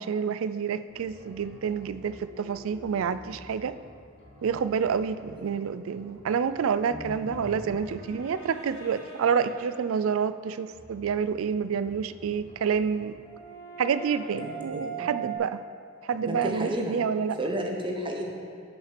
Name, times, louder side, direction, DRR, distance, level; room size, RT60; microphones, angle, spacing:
voice 1, 0.0-3.8 4.4-13.2 13.8-15.6 16.0-17.4, right 6 dB, 75° right, 13 dB, 0.4 m, -28 dB
sound 1, 0.9-10.0 10.7-15.4, right 4 dB, 55° left, 2.5 m, -43 dB
voice 2, 14.4-15.2 16.3-17.0 17.4-18.3, equal, 25° right, 1 dB, 1.0 m, -32 dB
8.9 x 6.0 x 5.8 m, 2.2 s
head